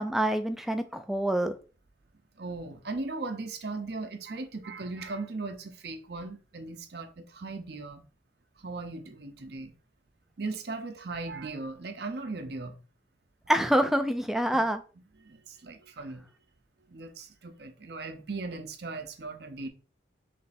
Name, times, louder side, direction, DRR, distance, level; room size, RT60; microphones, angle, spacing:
voice 1, 0.0-1.5 13.5-14.8, right 1 dB, ahead, 0.3 m, -26 dB
voice 2, 2.4-8.0 8.6-9.7 10.4-12.8 15.2-16.2 16.9-19.7, right 3 dB, 55° right, 0.7 m, -38 dB
3.4 x 3.2 x 4.1 m
head